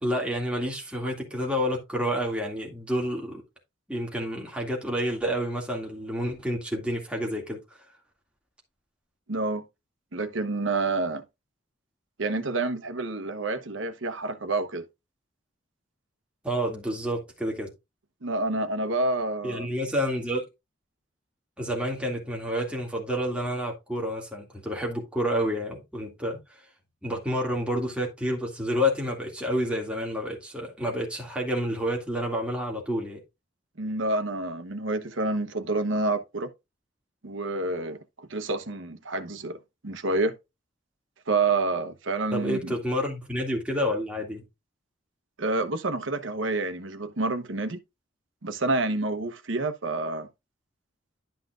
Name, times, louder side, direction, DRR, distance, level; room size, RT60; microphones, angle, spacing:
voice 1, 0.0-3.4 3.9-7.6 16.4-17.7 19.4-20.4 21.6-26.4 27.0-33.2 42.3-44.4, equal, 5° right, 2.2 m, -29 dB
voice 2, 9.3-9.6 10.1-11.2 12.2-14.9 18.2-19.7 33.8-36.5 37.2-39.6 39.8-40.3 41.3-42.7 45.4-47.8 48.4-50.3, right 2 dB, 80° right, 1.0 m, -28 dB
11.5 x 5.7 x 2.5 m
head